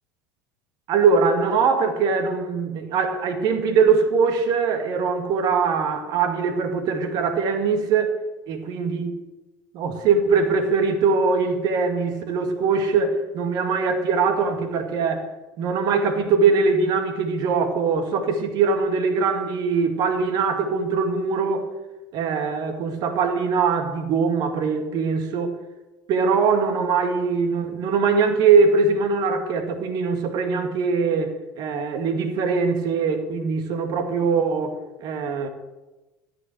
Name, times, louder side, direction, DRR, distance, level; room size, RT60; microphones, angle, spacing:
voice 1, 0.9-8.1 8.5-9.1 9.7-15.2 15.6-21.7 22.1-25.5 26.1-35.5, right 5 dB, 50° right, 2.1 m, -22 dB
13.0 x 8.7 x 6.5 m
figure-of-eight pair, 70°, 9 cm